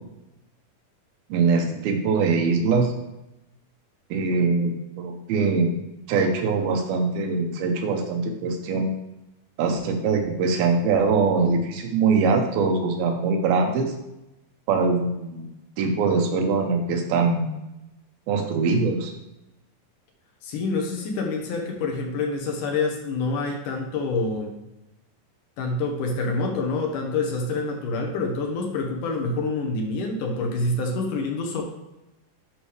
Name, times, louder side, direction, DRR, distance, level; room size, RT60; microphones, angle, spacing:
voice 1, 1.3-2.9 4.1-5.7 6.1-8.9 9.6-13.9 14.7-17.5 18.3-19.1, right 4 dB, 90° right, 3 dB, 2.9 m, -22 dB
voice 2, 20.4-24.5 25.6-31.6, left 3 dB, 70° left, 2 dB, 2.5 m, -27 dB
11.0 x 5.5 x 3.3 m, 0.94 s
omnidirectional pair, 4.2 m